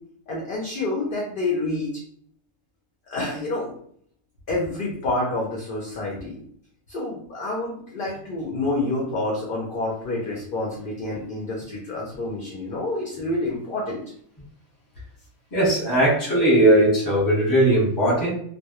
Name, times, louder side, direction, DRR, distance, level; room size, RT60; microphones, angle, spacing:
voice 1, 0.3-1.9 3.1-3.7 4.5-6.4 6.9-14.0, left 2 dB, 60° left, -2 dB, 0.6 m, -28 dB
voice 2, 15.5-18.3, right 1 dB, 20° left, -5 dB, 0.8 m, -18 dB
2.1 x 2.0 x 2.9 m, 0.63 s
omnidirectional pair, 1.3 m